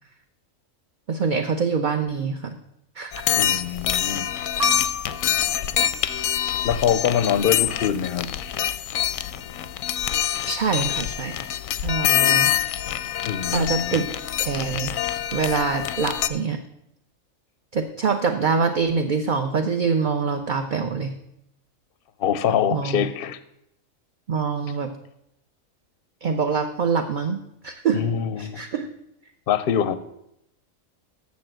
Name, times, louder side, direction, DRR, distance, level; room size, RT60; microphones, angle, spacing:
voice 1, 1.1-2.6 3.0-3.2 10.4-11.4 11.8-12.5 13.5-14.1 14.4-14.9 15.3-16.6 17.7-21.1 22.7-23.0 24.3-24.9 26.2-28.0 28.4-28.9, right 5 dB, 50° right, 5 dB, 0.6 m, -25 dB
sound 1, 3.1-16.3, left 11 dB, 85° left, 1.0 m, -25 dB
voice 2, 3.4-4.3 6.6-8.5 13.2-14.1 22.2-23.4 27.9-28.6 29.5-30.0, left 8 dB, 55° left, 13 dB, 0.7 m, -24 dB
sound 2, 4.6-5.9, left 1 dB, 65° right, 1.5 m, -31 dB
7.2 x 6.9 x 7.6 m, 0.78 s
omnidirectional pair, 1.4 m